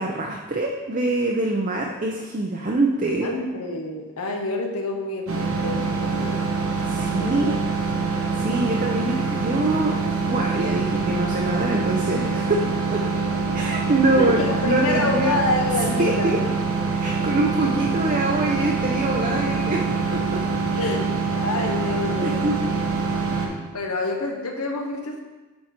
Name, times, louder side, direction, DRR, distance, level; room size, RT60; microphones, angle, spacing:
voice 1, 0.0-3.3 6.9-7.4 8.4-9.9 10.2-12.6 12.9-13.0 13.5-15.4 16.0-16.4 17.0-19.8 20.3-20.4 22.2-22.6 23.3-23.6, right 2 dB, 35° right, 0 dB, 0.6 m, -24 dB
voice 2, 3.2-6.5 7.1-7.5 14.1-16.5 20.8-22.6 23.4-25.2, left 2 dB, 80° left, 2 dB, 1.0 m, -27 dB
sound 1, 5.3-23.5, right 4 dB, 65° right, 1.1 m, -25 dB
7.4 x 4.9 x 4.4 m, 1.2 s
head